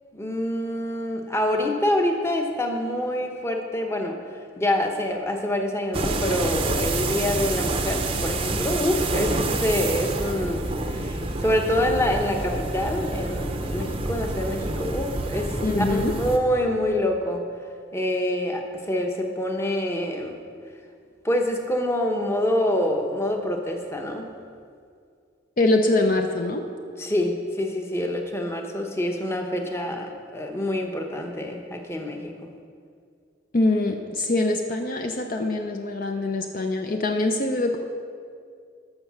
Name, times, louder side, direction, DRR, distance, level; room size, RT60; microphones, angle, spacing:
voice 1, 0.1-17.4 17.9-20.3 21.2-24.3 27.0-32.5, left 1 dB, 15° left, 3 dB, 0.9 m, -26 dB
sound 1, 5.9-16.4, right 2 dB, 25° right, 0.6 m, -28 dB
voice 2, 15.6-16.1 25.6-26.6 33.5-37.8, left 2 dB, 45° left, 4 dB, 0.6 m, -23 dB
13.0 x 6.5 x 6.1 m, 2.2 s
head